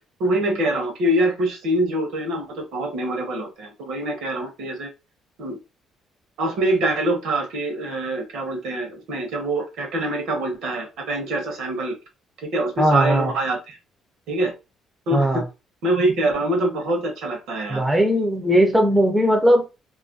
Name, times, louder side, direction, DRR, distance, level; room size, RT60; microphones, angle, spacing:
voice 1, 0.2-4.9 5.4-5.6 6.4-11.9 12.4-13.8 14.3-14.5 15.1-15.4 15.8-17.8, right 1 dB, 75° right, 0.8 m, -24 dB
voice 2, 12.8-13.3 15.1-15.4 17.7-19.7, equal, 5° right, 0.3 m, -18 dB
2.6 x 2.3 x 2.5 m
cardioid pair, 170°, 0 cm